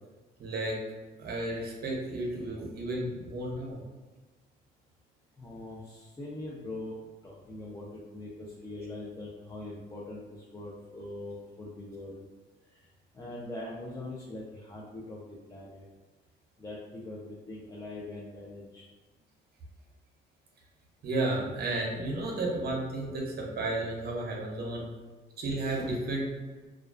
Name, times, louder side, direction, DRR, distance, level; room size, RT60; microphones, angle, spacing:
voice 1, 0.4-0.8 1.2-3.8 21.0-24.9 25.4-26.3, right 2 dB, 50° right, -1 dB, 0.7 m, -32 dB
voice 2, 5.4-7.0 7.2-10.2 10.5-12.2 13.1-15.8 16.6-18.8, left 2 dB, 15° left, -5 dB, 0.4 m, -42 dB
2.3 x 2.2 x 2.4 m, 1.3 s
cardioid pair, 90°, 20 cm